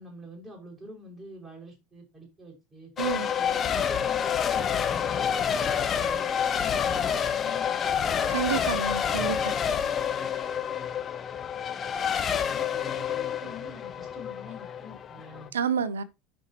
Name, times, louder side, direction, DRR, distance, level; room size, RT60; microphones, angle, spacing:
voice 1, 0.0-2.9 3.3-8.3 12.5-15.5, left 1 dB, 20° right, 5.6 m, -46 dB
Race car auto racing / Accelerating revving vroom / Mechanisms, 3.0-15.5, left 8 dB, 35° left, 1.2 m, -28 dB
voice 2, 8.3-9.6 15.5-16.0, right 8 dB, 90° right, 0.6 m, -29 dB
13.0 x 5.3 x 2.9 m
hypercardioid pair, 85°, 0 cm